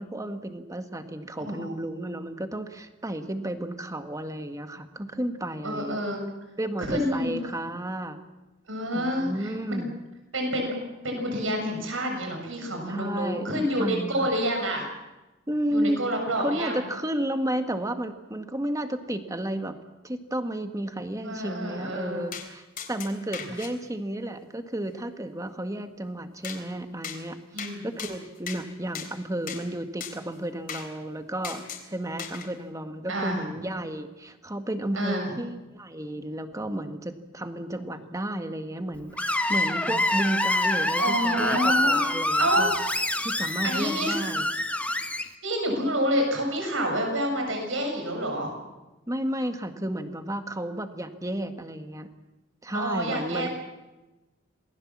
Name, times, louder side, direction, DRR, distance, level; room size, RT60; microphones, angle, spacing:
voice 1, 0.0-6.0 6.6-8.2 8.9-9.9 12.9-14.3 15.5-16.0 16.4-19.8 20.0-22.6 22.9-42.7 43.2-44.5 49.1-52.1 52.6-53.5, right 1 dB, 15° right, 7 dB, 1.7 m, -32 dB
voice 2, 5.6-6.2 6.8-7.3 8.7-9.8 10.3-10.7 11.0-14.8 15.7-16.8 21.2-22.2 27.5-27.9 33.1-33.4 35.0-35.3 39.5-40.0 41.0-42.0 42.4-42.6 43.6-44.1 45.4-48.5 52.7-53.5, equal, 85° right, 3 dB, 7.2 m, -28 dB
sound 1, 22.3-22.5 22.8-23.7 26.4-26.6 27.0-27.2 27.6-27.7 28.0-28.6 28.9-29.1 29.5-29.6 30.0-30.1 30.7-30.9 31.4-31.8 32.2-32.5, left 7 dB, 50° left, 3.8 m, -37 dB
Screech, 39.2-45.2, left 1 dB, 5° left, 1.5 m, -26 dB
27.5 x 20.0 x 7.5 m, 1.1 s
head